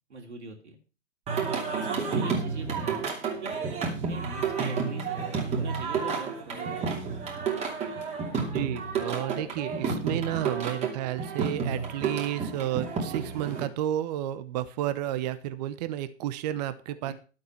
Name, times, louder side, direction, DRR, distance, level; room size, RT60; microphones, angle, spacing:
voice 1, 0.1-0.8 1.8-3.1 3.4-3.5 3.8-6.9 17.0-17.1, right 3 dB, 70° right, 3 dB, 3.2 m, -41 dB
Singing, 1.3-13.6, right 5 dB, 20° right, 2.8 m, -31 dB
voice 2, 8.5-17.1, right 12 dB, 35° right, 13 dB, 1.0 m, -31 dB
11.5 x 7.9 x 5.6 m, 0.35 s
figure-of-eight pair, 125°, 36 cm